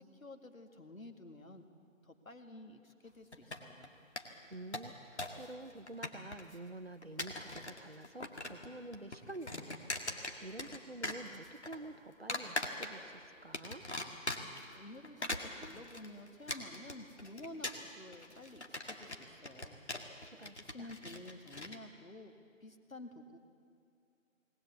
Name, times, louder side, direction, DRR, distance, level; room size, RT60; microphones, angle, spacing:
voice 1, 0.0-1.6 2.0-3.9 14.7-19.8 20.4-23.4, left 2 dB, 80° left, 5 dB, 2.3 m, -51 dB
sound 1, 3.3-3.9 4.2-4.3 4.5-5.4 5.7-6.5 7.0-7.8 8.0-8.7 8.9-10.8 11.0-11.8 12.3-13.1 13.5-14.6 15.0-21.8, left 2 dB, 55° left, 2.0 m, -40 dB
voice 2, 4.5-13.8 20.3-20.9, right 2 dB, 50° right, 10 dB, 0.8 m, -49 dB
20.0 x 19.0 x 8.2 m, 2.3 s
figure-of-eight pair, 175°, 40 cm